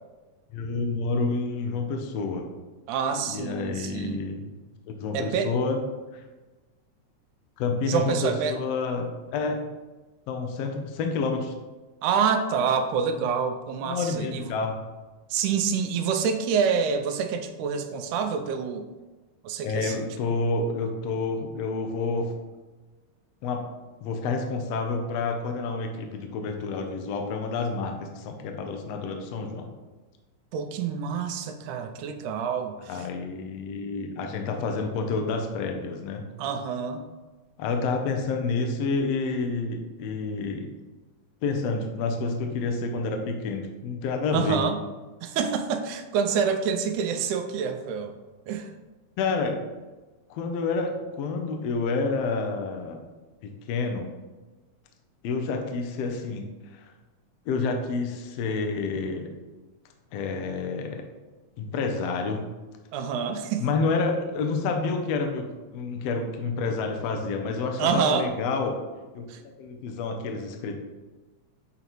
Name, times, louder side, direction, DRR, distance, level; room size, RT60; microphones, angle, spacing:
voice 1, 0.5-2.5 3.2-4.5 4.9-5.8 6.1-6.2 7.6-9.6 10.3-11.5 13.8-14.8 19.6-22.3 23.4-23.6 24.0-29.7 32.9-36.2 37.6-40.7 41.4-44.6 49.2-49.6 50.3-53.0 53.7-54.1 55.2-56.4 56.7-56.8 57.5-59.3 60.1-61.0 61.6-62.4 63.6-65.5 65.7-68.7 69.1-69.2 69.6-70.8, left 4 dB, 75° left, 3 dB, 1.6 m, -29 dB
voice 2, 2.9-4.2 5.1-5.6 7.9-8.6 12.0-14.5 15.3-18.8 19.4-20.1 30.5-33.1 36.4-37.0 44.3-44.8 45.2-48.1 48.5-48.7 62.9-63.6 67.8-68.3 69.3-69.4, right 6 dB, 90° right, 6 dB, 2.1 m, -27 dB
8.2 x 4.0 x 3.0 m, 1.2 s
omnidirectional pair, 3.4 m